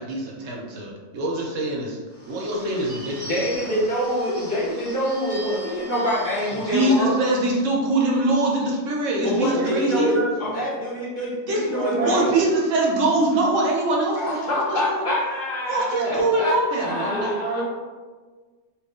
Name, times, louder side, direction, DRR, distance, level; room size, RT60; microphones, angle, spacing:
voice 1, 0.0-2.0 2.3-3.7 6.6-10.1 11.5-14.4 14.7-15.0 15.7-17.3, right 2 dB, 70° right, -2 dB, 1.0 m, -23 dB
Bird / Bell, 2.1-7.1, equal, 10° left, 0.9 m, -40 dB
voice 2, 3.3-7.2 9.2-12.3 14.1-17.6, equal, 45° left, -7 dB, 0.8 m, -26 dB
voice 3, 9.2-10.3 11.5-12.3 15.8-16.3 16.9-17.6, right 1 dB, 15° right, -6 dB, 0.4 m, -28 dB
3.1 x 2.4 x 3.5 m, 1.4 s
omnidirectional pair, 1.4 m